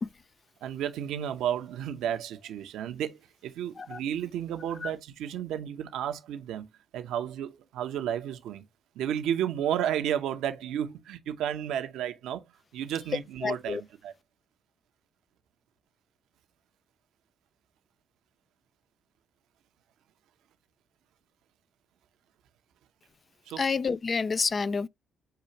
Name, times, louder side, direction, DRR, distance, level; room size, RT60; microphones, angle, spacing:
voice 1, 0.6-6.7 6.9-8.6 8.9-12.4 12.7-14.1 23.5-23.6, right 10 dB, 80° right, 0.7 m, -32 dB
voice 2, 13.4-13.8 23.6-24.9, left 5 dB, 40° left, 0.3 m, -29 dB
6.7 x 2.5 x 3.0 m
supercardioid pair, 60°, 0 cm